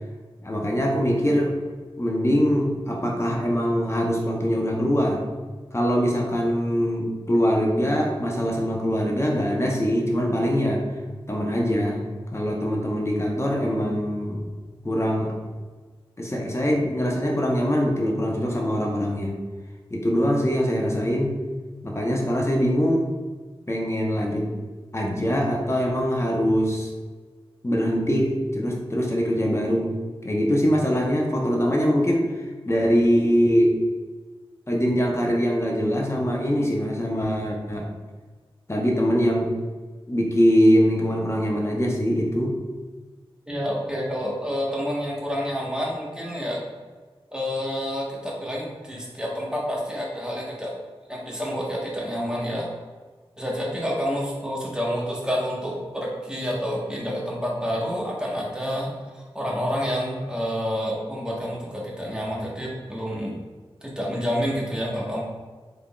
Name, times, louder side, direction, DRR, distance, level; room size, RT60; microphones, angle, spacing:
voice 1, 0.4-1.6 2.0-5.2 5.7-10.8 11.3-12.0 12.3-14.4 14.8-15.3 16.2-19.3 19.9-21.4 21.8-23.2 23.7-24.5 24.9-26.9 27.6-29.9 30.2-32.2 32.7-33.8 34.7-37.9 38.7-39.5 40.1-42.6, equal, 25° left, 0 dB, 0.8 m, -23 dB
voice 2, 43.5-46.6 47.3-50.7 51.1-52.7 53.4-63.4 63.8-65.3, equal, 10° right, -4 dB, 1.2 m, -28 dB
3.7 x 3.3 x 2.3 m, 1.4 s
cardioid pair, 40°, 10 cm